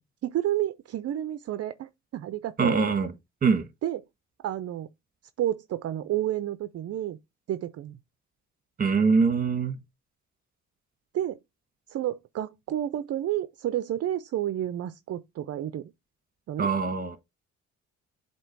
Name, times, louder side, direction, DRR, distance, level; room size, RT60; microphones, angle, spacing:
voice 1, 0.2-2.9 3.8-4.0 4.4-4.9 5.4-7.2 7.5-8.0 11.1-11.4 11.9-15.9 16.5-16.7, right 12 dB, 55° right, 0.5 m, -30 dB
voice 2, 2.6-3.1 3.4-3.7 8.8-9.7 16.6-17.2, right 5 dB, 30° right, 1.4 m, -23 dB
7.7 x 2.9 x 4.5 m
cardioid pair, 90°, 30 cm